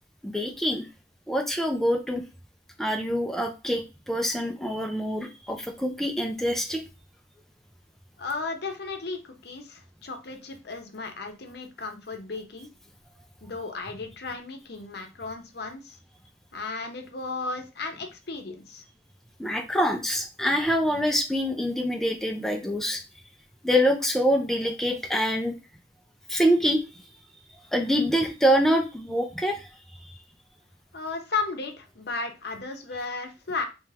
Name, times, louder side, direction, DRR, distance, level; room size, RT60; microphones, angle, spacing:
voice 1, 0.2-0.9 1.3-2.2 2.8-6.8 19.4-23.0 23.6-25.6 26.3-26.8 27.7-29.7 30.0-30.2, equal, ahead, 2 dB, 0.4 m, -25 dB
voice 2, 8.2-12.7 13.4-16.0 16.5-18.8 30.9-33.6, left 4 dB, 65° left, 5 dB, 0.7 m, -34 dB
3.3 x 2.9 x 3.4 m, 0.29 s
head